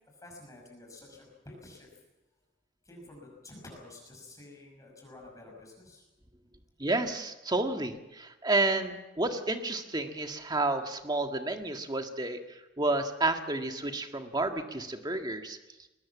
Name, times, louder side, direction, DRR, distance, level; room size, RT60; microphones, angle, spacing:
voice 1, 0.2-1.9 2.8-6.0, left 2 dB, 20° left, -1 dB, 5.9 m, -50 dB
voice 2, 6.8-15.6, right 2 dB, 20° right, 5 dB, 1.7 m, -31 dB
21.5 x 19.5 x 7.3 m, 1.0 s
head